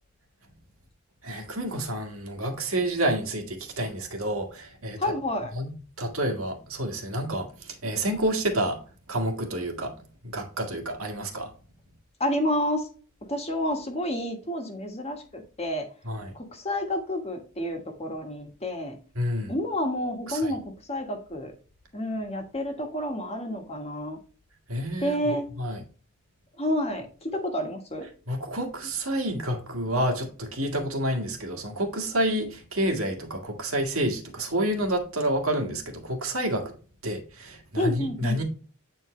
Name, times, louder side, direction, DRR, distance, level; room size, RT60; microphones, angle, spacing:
voice 1, 1.2-5.0 5.5-5.7 6.0-8.8 9.1-9.9 10.2-11.5 16.0-16.3 19.2-19.5 20.3-20.5 24.7-25.3 25.6-25.8 28.3-36.7 37.0-38.4, right 1 dB, 85° right, 1.8 m, -29 dB
voice 2, 5.0-5.5 12.2-12.9 13.3-15.9 16.3-18.9 19.5-21.5 21.9-24.2 25.0-25.5 26.6-28.1 37.8-38.4, left 1 dB, 30° left, 1.4 m, -29 dB
8.6 x 4.5 x 3.1 m
head